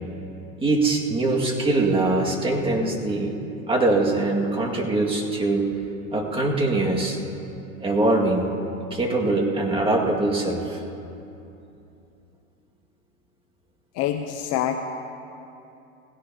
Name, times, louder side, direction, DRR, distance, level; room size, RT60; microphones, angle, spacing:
voice 1, 0.6-3.3 3.7-5.7 6.1-7.2 7.8-8.5 8.9-10.8, right 2 dB, 15° right, 0 dB, 2.0 m, -22 dB
voice 2, 13.9-14.8, left 10 dB, 35° left, 7 dB, 0.7 m, -25 dB
19.5 x 16.5 x 2.9 m, 2.8 s
hypercardioid pair, 110°, 42 cm